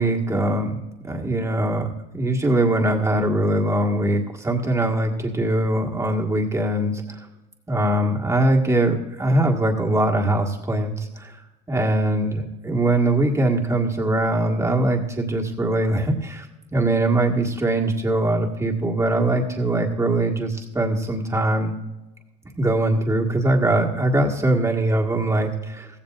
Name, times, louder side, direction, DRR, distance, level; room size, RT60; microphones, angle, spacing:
voice 1, 0.0-7.2 7.7-11.3 11.7-16.5 16.7-21.7 22.6-25.9, right 1 dB, 15° right, 1 dB, 1.8 m, -22 dB
15.5 x 15.5 x 2.5 m, 1.0 s
cardioid pair, 135°, 21 cm